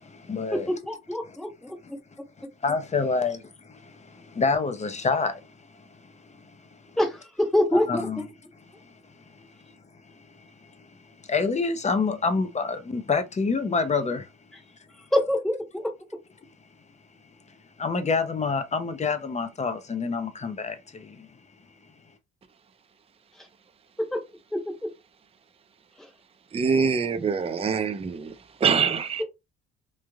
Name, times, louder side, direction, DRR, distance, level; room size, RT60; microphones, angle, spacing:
voice 1, 0.0-0.7 2.6-5.4 5.8-5.9 6.3-6.5 7.9-8.2 8.8-9.7 10.3-10.7 11.2-14.3 17.8-21.3, left 4 dB, 25° left, 0.6 m, -28 dB
voice 2, 0.9-1.8 7.0-8.0 15.1-15.9 23.4-23.5 24.1-24.2 24.5-24.9 26.0-26.1, left 1 dB, ahead, 0.9 m, -25 dB
voice 3, 26.5-28.4 28.6-29.2, right 5 dB, 20° right, 0.5 m, -24 dB
3.1 x 2.4 x 2.3 m
cardioid pair, 90°, 30 cm